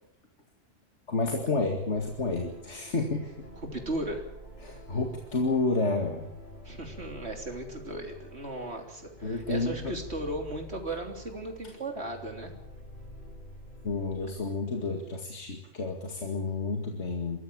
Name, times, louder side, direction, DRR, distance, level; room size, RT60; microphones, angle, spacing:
voice 1, 1.1-3.3 4.6-6.3 9.2-9.9 13.8-17.4, left 3 dB, 70° left, 3 dB, 2.5 m, -30 dB
sound 1, 1.9-14.4, left 1 dB, 40° left, 5.9 m, -48 dB
voice 2, 3.6-4.3 6.6-12.5, right 2 dB, 60° right, 3 dB, 3.8 m, -36 dB
24.0 x 14.5 x 8.8 m, 0.80 s
omnidirectional pair, 1.3 m